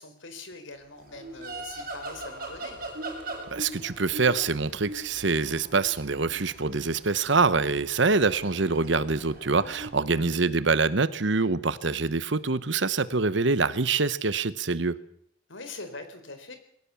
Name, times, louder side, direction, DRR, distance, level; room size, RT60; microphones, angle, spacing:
voice 1, 0.0-2.9 10.1-10.3 15.5-16.6, left 3 dB, 80° left, 8 dB, 4.2 m, -43 dB
sound 1, 1.1-9.9, right 2 dB, 50° right, 4.7 m, -41 dB
voice 2, 3.5-15.0, right 4 dB, 65° right, 16 dB, 1.0 m, -25 dB
22.0 x 17.5 x 7.0 m, 0.70 s
head